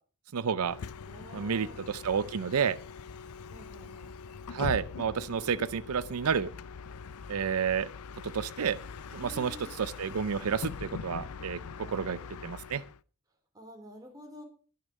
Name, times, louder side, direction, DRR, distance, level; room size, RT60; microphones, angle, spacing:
voice 1, 0.3-0.8 1.3-2.8 4.5-6.5 7.3-7.9 8.3-8.8 9.1-11.6 11.9-12.8, right 6 dB, 85° right, 16 dB, 0.5 m, -30 dB
Bus, 0.6-13.0, left 5 dB, 85° left, 0.5 m, -42 dB
voice 2, 1.0-1.8 3.5-4.1 9.2-9.7 11.8-12.4 13.5-14.4, equal, 15° right, 2 dB, 3.5 m, -50 dB
20.0 x 6.7 x 5.3 m, 0.40 s
head